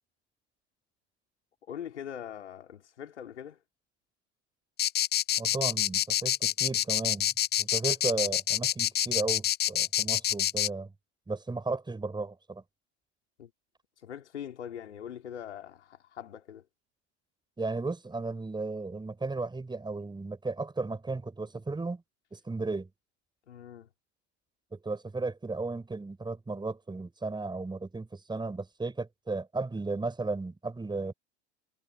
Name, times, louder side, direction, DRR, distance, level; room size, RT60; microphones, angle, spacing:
voice 1, 1.7-3.6 13.4-13.5 14.0-16.6 23.5-23.9, left 9 dB, 80° left, 4.3 m, -42 dB
sound 1, 4.8-10.7, left 12 dB, 30° left, 0.7 m, -27 dB
voice 2, 5.4-7.3 7.6-10.9 11.3-12.6 17.6-22.0 22.3-22.9 24.7-31.1, right 3 dB, 15° right, 6.8 m, -35 dB
hypercardioid pair, 80°, 34 cm